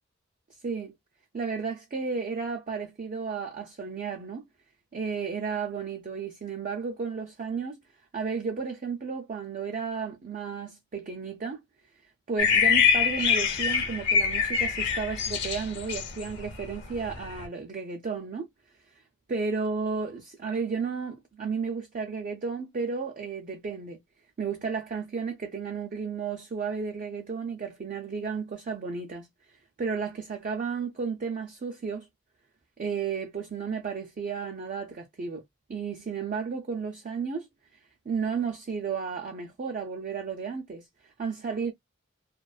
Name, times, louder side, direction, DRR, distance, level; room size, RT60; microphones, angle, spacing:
voice 1, 0.6-0.9 1.3-4.5 4.9-7.8 8.1-11.6 12.3-18.5 19.3-24.0 24.4-29.3 29.8-32.1 32.8-35.4 35.7-37.5 38.1-41.7, right 5 dB, 40° right, 0.4 m, -33 dB
sound 1, 12.4-17.5, left 6 dB, 55° left, 0.7 m, -25 dB
2.4 x 2.2 x 2.3 m
head